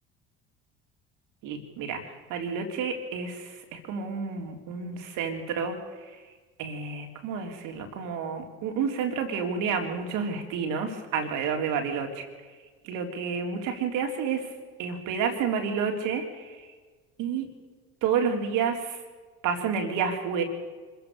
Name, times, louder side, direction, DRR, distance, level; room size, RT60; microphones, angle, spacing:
voice 1, 1.4-2.0 2.3-5.8 6.6-12.2 12.8-14.4 14.8-16.5 17.2-17.5 18.0-19.0 19.4-20.4, right 6 dB, 65° right, 4 dB, 3.6 m, -30 dB
25.5 x 15.0 x 6.8 m, 1.4 s
hypercardioid pair, 70°, 34 cm